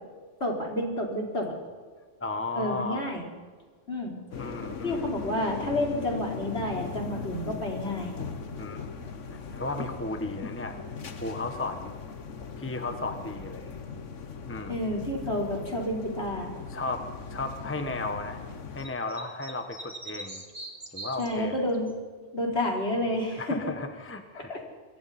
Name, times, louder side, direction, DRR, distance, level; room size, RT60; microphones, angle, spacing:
voice 1, 0.4-1.5 2.6-3.3 3.9-4.5 4.8-8.2 14.7-16.5 21.2-21.9 22.3-23.7 24.4-24.6, left 1 dB, 60° left, -1 dB, 4.7 m, -30 dB
voice 2, 2.2-3.1 4.4-5.1 8.6-8.9 9.3-10.8 11.2-11.9 12.6-13.8 14.5-14.8 16.7-18.4 18.7-20.4 20.9-21.7 23.4-24.6, left 2 dB, 10° left, 6 dB, 1.2 m, -35 dB
sound 1, 4.3-18.9, left 5 dB, 80° left, 1.6 m, -39 dB
sound 2, 18.8-21.9, right 2 dB, 30° right, 2.5 m, -42 dB
26.5 x 22.5 x 4.3 m, 1.5 s
omnidirectional pair, 1.2 m